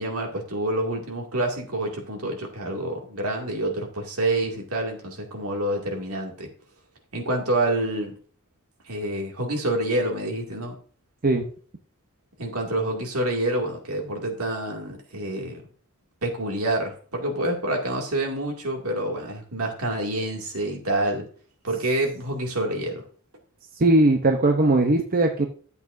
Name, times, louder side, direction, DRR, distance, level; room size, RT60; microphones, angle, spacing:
voice 1, 0.0-6.5 7.1-8.1 8.8-10.7 12.4-15.6 16.2-21.2 21.6-23.0, right 1 dB, 80° right, 1 dB, 2.3 m, -27 dB
voice 2, 23.8-25.5, right 2 dB, 40° right, 3 dB, 0.8 m, -19 dB
12.0 x 8.0 x 2.6 m, 0.44 s
head